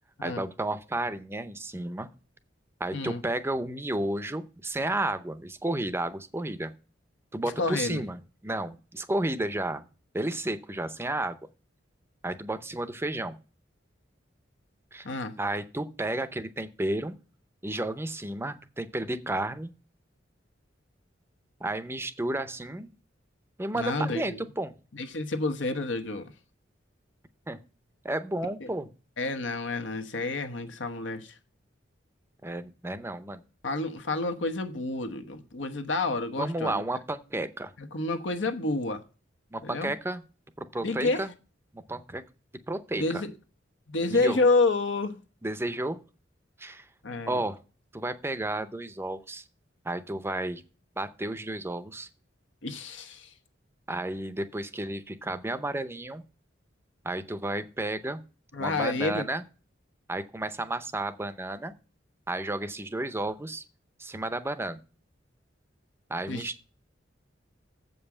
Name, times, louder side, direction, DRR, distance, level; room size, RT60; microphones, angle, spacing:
voice 1, 0.2-2.1 2.8-6.7 7.3-9.8 10.1-11.4 12.2-13.4 14.9-15.1 15.4-17.1 17.6-19.7 21.6-22.9 23.6-24.7 27.5-27.6 28.0-28.9 32.4-33.4 36.4-37.7 39.5-40.2 40.6-41.3 41.7-42.2 42.7-43.2 44.1-44.5 45.4-46.0 46.6-46.9 47.3-47.6 47.9-49.4 49.8-50.6 51.0-52.1 53.9-56.2 57.0-58.2 58.6-59.4 60.1-61.7 62.3-63.6 64.0-64.8 66.1-66.6, right 1 dB, 15° right, 0.6 m, -32 dB
voice 2, 7.4-8.0 15.0-15.3 23.7-24.4 24.9-26.3 28.6-28.7 29.2-31.4 33.6-36.8 37.8-39.0 39.6-39.9 40.8-41.3 43.0-43.3 43.9-45.2 47.0-47.4 52.6-53.3 58.5-59.3 66.3-66.5, left 3 dB, 80° left, 1.1 m, -29 dB
7.6 x 5.4 x 7.1 m
head